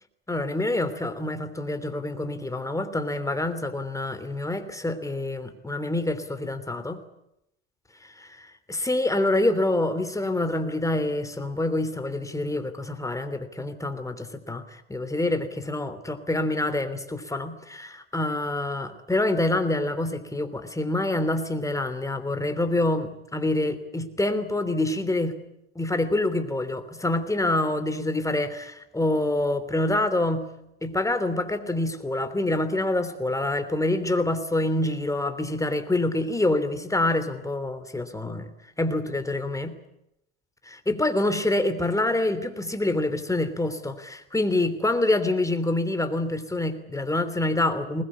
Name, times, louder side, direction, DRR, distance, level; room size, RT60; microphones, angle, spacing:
voice 1, 0.3-7.0 8.0-25.3 25.7-30.4 30.8-39.7 40.6-48.0, left 2 dB, 10° left, 9 dB, 3.1 m, -26 dB
21.0 x 20.5 x 9.9 m, 0.82 s
hypercardioid pair, 80°, 34 cm